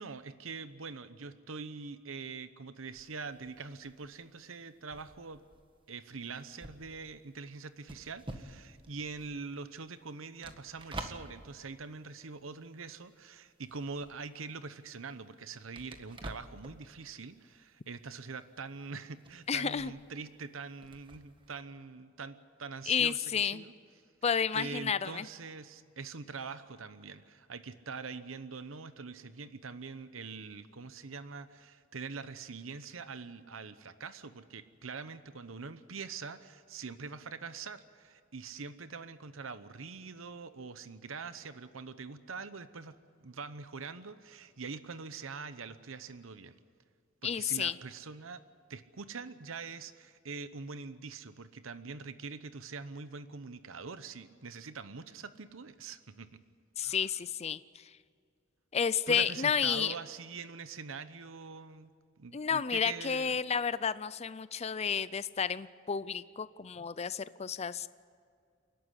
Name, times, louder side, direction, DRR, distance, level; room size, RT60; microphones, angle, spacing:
voice 1, 0.0-5.4 5.9-23.7 24.5-46.6 47.2-48.4 48.7-56.4 56.8-57.1 59.1-63.4, right 4 dB, 75° right, 13 dB, 0.9 m, -44 dB
sound 1, 2.9-13.2 13.4-21.6, right 2 dB, 25° right, 1.6 m, -49 dB
voice 2, 19.5-19.9 22.9-23.6 24.2-25.3 47.2-47.7 56.8-57.9 58.7-59.9 62.3-67.9, left 7 dB, 30° left, 16 dB, 0.5 m, -31 dB
29.0 x 12.0 x 9.8 m, 2.2 s
head